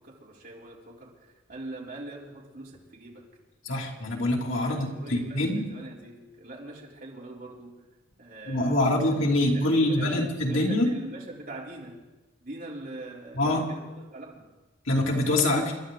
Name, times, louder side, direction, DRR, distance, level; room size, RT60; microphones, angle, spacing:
voice 1, 0.0-3.3 4.6-7.8 8.2-12.0 12.4-14.5, right 2 dB, 45° right, -3 dB, 3.5 m, -42 dB
voice 2, 3.6-5.7 8.4-10.9 13.3-13.7 14.8-15.7, left 1 dB, 75° left, -1 dB, 2.9 m, -25 dB
28.5 x 12.0 x 3.9 m, 1.2 s
head